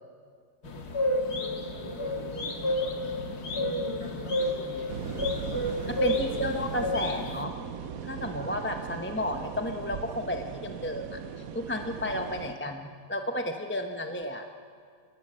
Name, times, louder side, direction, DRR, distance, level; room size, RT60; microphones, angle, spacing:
sound 1, 0.6-7.4, left 1 dB, 60° left, 2.2 m, -31 dB
voice 1, 1.7-3.0 3.5-7.0 8.4-8.8 11.9-12.1, left 1 dB, 35° left, -3 dB, 8.0 m, -46 dB
sound 2, 4.9-12.6, right 8 dB, 60° right, 1.2 m, -38 dB
voice 2, 6.0-7.5 8.0-11.2 11.5-14.4, left 1 dB, 10° left, 4 dB, 0.8 m, -32 dB
26.5 x 20.5 x 7.6 m, 2.1 s
omnidirectional pair, 1.9 m